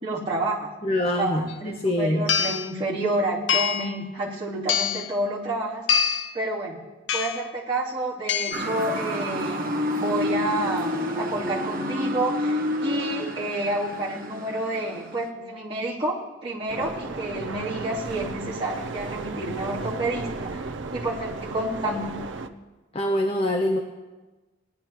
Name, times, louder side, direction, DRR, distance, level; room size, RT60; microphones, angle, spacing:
voice 1, 0.0-0.7 1.1-5.9 6.3-6.8 7.1-9.7 10.0-20.6 20.9-22.2, right 1 dB, 25° right, -9 dB, 2.9 m, -29 dB
voice 2, 0.8-2.3 22.9-23.8, left 1 dB, 30° left, 3 dB, 0.7 m, -24 dB
sound 1, 1.5-1.6 2.3-2.7 3.5-4.0 4.7-5.1 5.9-6.4 7.1-7.5 8.3-8.7, left 7 dB, 70° left, 0.5 m, -25 dB
Motor vehicle (road) / Siren, 8.5-15.3, left 1 dB, 45° right, 1.0 m, -29 dB
sound 2, 16.7-22.5, right 3 dB, 70° right, 0.6 m, -34 dB
19.5 x 11.5 x 3.0 m, 1.2 s
head